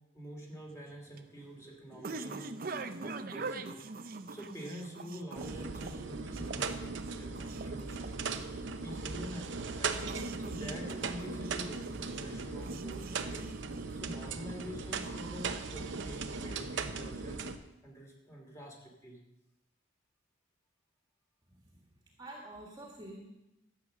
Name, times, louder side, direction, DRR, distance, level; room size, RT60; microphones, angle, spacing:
voice 1, 0.1-3.9 4.3-13.5 13.9-19.2, equal, 15° left, -1 dB, 2.7 m, -47 dB
sound 1, 0.7-14.3, right 3 dB, 45° right, 0.6 m, -44 dB
Foley Gas Boiler Loop Stereo, 5.4-17.6, right 4 dB, 75° right, 0.8 m, -38 dB
voice 2, 21.5-23.3, right 1 dB, 20° right, -1 dB, 1.7 m, -49 dB
12.5 x 8.1 x 6.4 m, 0.94 s
head